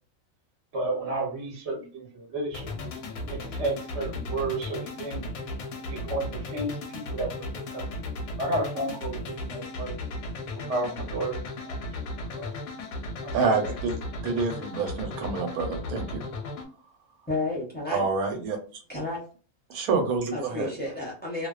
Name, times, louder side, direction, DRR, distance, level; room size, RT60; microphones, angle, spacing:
voice 1, 0.7-2.7 3.3-5.3 5.9-7.8 8.4-9.9 10.6-11.4 11.7-11.9 12.3-12.6 13.2-13.7, right 2 dB, 55° right, -1 dB, 1.0 m, -32 dB
sound 1, 2.5-16.7, left 2 dB, 90° left, 1.1 m, -36 dB
voice 2, 13.3-14.0 14.2-16.2 17.9-18.6 19.7-20.7, right 4 dB, 80° right, 5 dB, 1.1 m, -27 dB
voice 3, 17.3-18.0 18.9-19.2 20.3-21.5, left 2 dB, 10° left, -4 dB, 0.5 m, -31 dB
2.6 x 2.1 x 2.2 m, 0.38 s
omnidirectional pair, 1.5 m